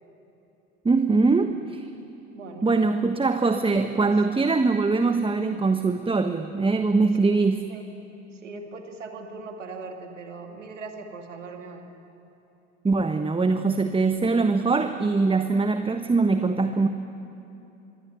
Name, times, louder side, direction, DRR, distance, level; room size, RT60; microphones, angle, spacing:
voice 1, 0.8-1.8 2.6-7.7 12.8-16.9, right 3 dB, 15° right, 8 dB, 1.2 m, -22 dB
voice 2, 2.3-2.7 4.0-4.1 7.2-7.4 7.7-7.9 8.3-11.8, right 3 dB, 80° right, 4 dB, 2.3 m, -40 dB
24.5 x 23.5 x 9.5 m, 3.0 s
figure-of-eight pair, 60°, 36 cm